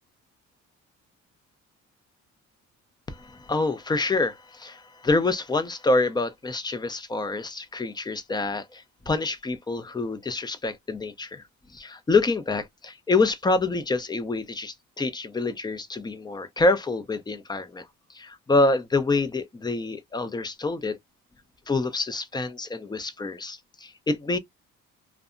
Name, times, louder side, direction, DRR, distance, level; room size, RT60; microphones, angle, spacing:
voice 1, 3.1-11.4 11.7-21.0 21.7-24.4, left 3 dB, 15° left, 0.5 m, -26 dB
2.6 x 2.1 x 2.4 m
cardioid pair, 100°, 30 cm